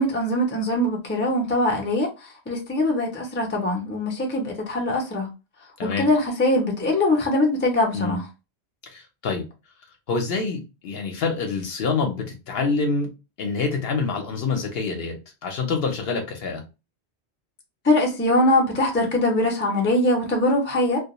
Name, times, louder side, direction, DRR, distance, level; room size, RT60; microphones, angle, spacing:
voice 1, 0.0-2.1 2.5-5.3 5.8-8.2 17.8-21.0, left 1 dB, 15° left, 0.4 m, -22 dB
voice 2, 8.9-9.4 10.1-13.1 13.4-16.6, left 4 dB, 65° left, 0.8 m, -26 dB
2.2 x 2.2 x 2.8 m
omnidirectional pair, 1.2 m